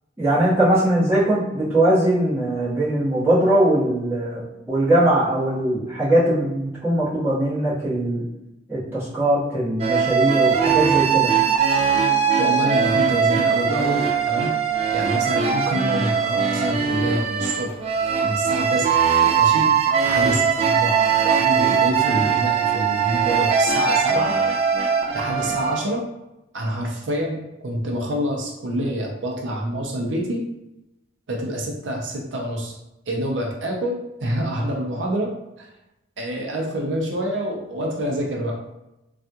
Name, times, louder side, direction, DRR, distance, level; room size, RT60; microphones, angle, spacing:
voice 1, 0.2-8.2 8.7-11.3, right 1 dB, 10° right, -12 dB, 1.5 m, -20 dB
sound 1, 9.8-25.8, right 7 dB, 35° right, 0.3 m, -20 dB
voice 2, 12.4-14.5 14.9-17.7 18.2-19.0 19.4-19.8 20.0-24.3 25.1-26.0 26.5-30.4 31.3-32.7 33.1-35.3 35.6-35.7 36.2-38.7, right 1 dB, 90° right, 0 dB, 0.6 m, -26 dB
3.4 x 2.3 x 2.8 m, 0.91 s
head